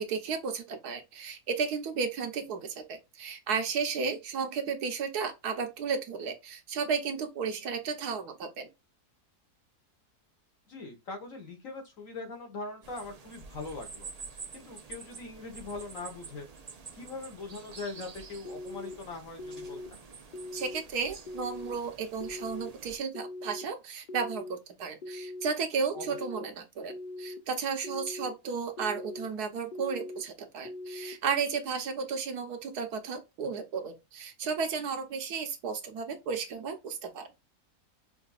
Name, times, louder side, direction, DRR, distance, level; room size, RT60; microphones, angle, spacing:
voice 1, 0.0-8.7 20.5-37.3, right 5 dB, 75° right, 1.4 m, -33 dB
voice 2, 10.7-14.1 14.5-16.5 16.9-19.8 25.9-26.2, left 3 dB, 60° left, 1.5 m, -41 dB
sound 1, 12.8-23.0, right 5 dB, 55° right, 0.4 m, -48 dB
sound 2, 18.4-18.9 19.4-19.9 20.3-20.8 21.3-21.7 22.2-22.7 23.1-23.6 24.1-24.6 25.0-25.5 26.0-26.4 26.9-27.4 27.8-28.3 28.8-29.3 29.7-30.2 30.6-31.1, left 2 dB, 80° left, 0.4 m, -41 dB
5.7 x 2.7 x 2.3 m
omnidirectional pair, 1.7 m